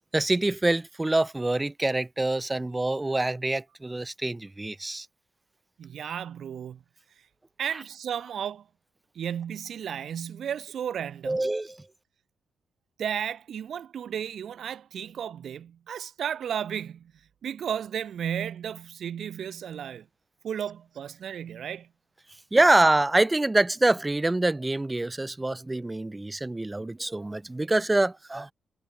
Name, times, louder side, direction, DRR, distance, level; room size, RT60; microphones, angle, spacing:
voice 1, 0.1-5.1 7.7-7.8 11.2-11.9 22.5-28.5, right 2 dB, 15° right, 0.8 m, -25 dB
voice 2, 5.8-6.8 7.6-8.6 9.1-11.4 13.0-17.1 17.4-20.0 20.4-21.9 22.5-22.6, right 9 dB, 70° right, 1.6 m, -34 dB
cardioid pair, 105°, 0 cm